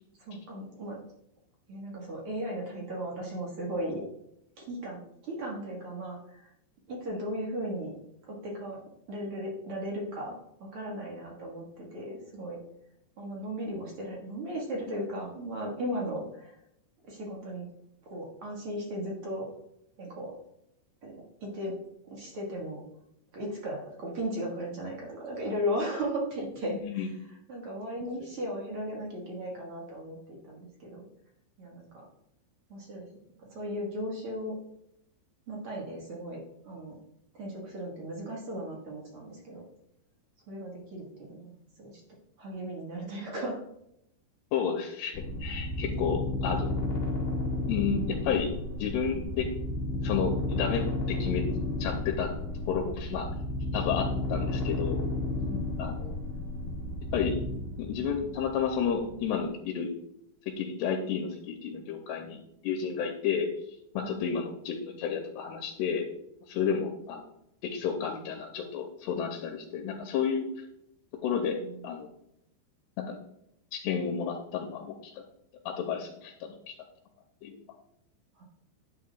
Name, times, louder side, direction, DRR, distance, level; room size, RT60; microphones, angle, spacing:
voice 1, 0.2-1.0 1.7-4.0 4.6-6.5 6.9-7.9 8.2-8.8 9.1-12.6 13.2-16.6 17.0-17.6 18.0-19.5 20.0-20.4 21.0-21.1 21.4-21.8 22.0-22.8 23.3-31.0 31.6-32.1 32.7-33.1 33.4-34.5 35.5-37.0 37.3-39.6 40.5-42.0 42.4-43.6 45.8-46.2 55.4-55.8 64.0-64.1 71.6-71.9 78.3-78.4, equal, 65° right, -2 dB, 1.3 m, -36 dB
voice 2, 26.8-27.1 44.5-45.1 45.4-46.8 47.7-49.5 50.0-51.5 51.8-52.3 52.7-53.3 53.7-55.0 55.8-56.2 57.1-57.3 57.8-59.9 60.5-63.5 63.9-66.1 66.5-67.2 67.6-70.5 71.2-72.1 73.0-73.2 73.7-75.1 75.7-76.8 77.4-77.6, left 7 dB, 85° left, 3 dB, 2.6 m, -31 dB
sound 1, 45.1-59.4, left 2 dB, 60° left, 0.8 m, -32 dB
10.5 x 8.0 x 2.3 m, 0.76 s
omnidirectional pair, 5.1 m